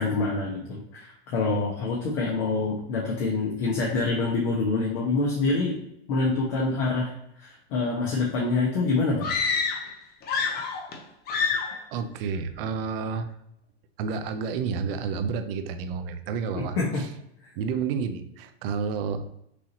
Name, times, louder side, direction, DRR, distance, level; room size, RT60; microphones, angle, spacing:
voice 1, 0.0-5.8 6.1-7.1 7.4-9.3 16.5-17.0, left 3 dB, 55° left, -4 dB, 1.2 m, -26 dB
sound 1, 9.2-9.9 10.2-11.0 11.3-11.8, left 5 dB, 30° left, 0.8 m, -27 dB
voice 2, 11.9-13.3 14.0-17.1 17.5-19.2, right 5 dB, 60° right, 9 dB, 0.7 m, -30 dB
6.2 x 2.7 x 2.9 m, 0.80 s
hypercardioid pair, 120°, 33 cm